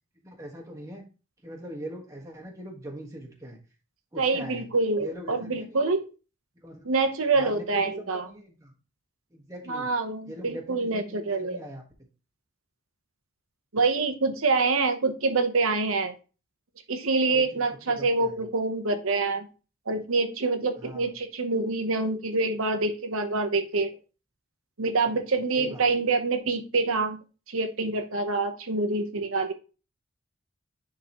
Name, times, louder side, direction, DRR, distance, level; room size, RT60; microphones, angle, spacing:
voice 1, 0.2-1.1 1.4-3.6 4.1-4.7 5.0-5.8 6.5-6.9 7.3-8.7 9.3-9.9 10.3-11.8 17.3-17.6 18.0-18.4 20.8-21.1 25.6-25.8, equal, 15° right, 1.5 m, -41 dB
voice 2, 4.2-6.0 6.8-8.3 9.7-11.6 13.7-16.1 16.9-19.5 19.9-23.9 24.8-27.2 27.5-29.5, right 3 dB, 80° right, 0.9 m, -26 dB
10.0 x 3.9 x 3.0 m
head